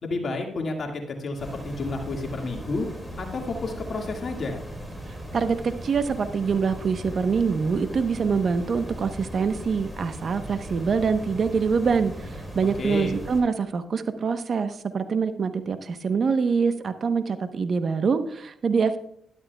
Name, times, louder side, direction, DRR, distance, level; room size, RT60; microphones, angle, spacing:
voice 1, 0.0-2.9 3.2-4.6 12.8-13.2, left 3 dB, 55° left, 2 dB, 2.0 m, -30 dB
sound 1, 1.4-13.4, equal, ahead, 4.2 m, -38 dB
voice 2, 5.3-19.0, right 5 dB, 55° right, 9 dB, 1.0 m, -25 dB
12.5 x 12.5 x 2.3 m, 0.70 s
supercardioid pair, 55°, 0 cm